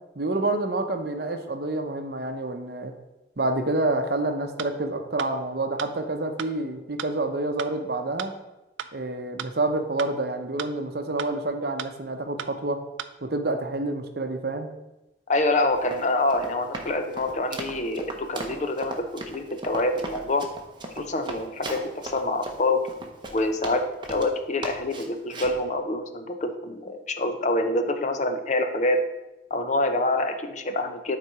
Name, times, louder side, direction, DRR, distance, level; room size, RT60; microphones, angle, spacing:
voice 1, 0.2-2.9 3.4-8.3 8.9-12.8 13.2-14.7, right 2 dB, 55° right, 6 dB, 0.7 m, -28 dB
sound 1, 4.6-4.7 5.2-5.3 5.8-5.9 6.4-6.5 7.0-7.1 7.6-7.7 8.2-8.3 8.8-8.9 9.4-9.5 10.0-10.1 10.6-10.7 11.2-11.3 11.8-11.9 12.4-12.5 13.0-13.1, right 8 dB, 85° right, 0.4 m, -34 dB
voice 2, 15.3-20.5 21.0-22.9 23.3-29.1 29.5-31.2, left 2 dB, 40° left, 7 dB, 0.6 m, -26 dB
Run, 15.7-24.3 24.6-25.6, right 2 dB, 25° right, 0.8 m, -37 dB
9.4 x 4.1 x 4.8 m, 1.0 s
head